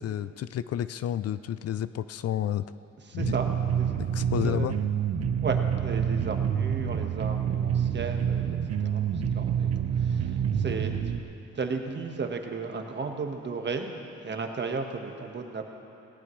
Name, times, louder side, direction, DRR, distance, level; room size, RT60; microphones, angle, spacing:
voice 1, 0.0-2.7 3.1-3.4 4.0-4.8, left 10 dB, 55° left, 15 dB, 0.5 m, -30 dB
voice 2, 3.1-3.9 4.3-4.7 5.4-8.5 8.8-11.2 11.5-13.9 14.2-15.6, right 4 dB, 35° right, 4 dB, 1.5 m, -34 dB
sound 1, 3.2-11.2, right 8 dB, 55° right, 0.9 m, -27 dB
18.5 x 18.0 x 3.2 m, 2.8 s
cardioid pair, 90°, 30 cm